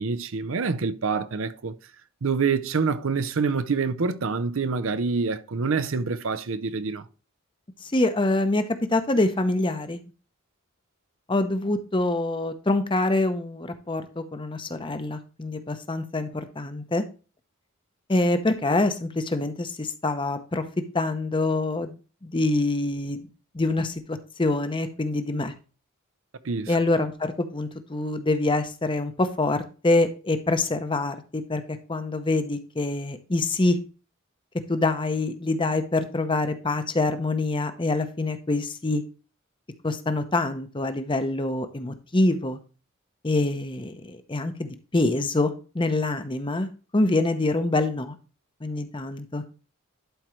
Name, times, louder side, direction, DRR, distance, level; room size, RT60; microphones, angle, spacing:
voice 1, 0.0-1.7 2.2-7.1 26.4-26.8, right 4 dB, 65° right, 0.6 m, -26 dB
voice 2, 7.8-8.6 8.9-10.0 11.3-17.0 18.1-20.6 20.9-23.3 23.5-25.5 26.7-33.8 34.7-39.0 39.8-42.6 43.2-48.2 48.6-49.4, left 2 dB, 25° left, 0.7 m, -25 dB
11.5 x 4.5 x 3.1 m
head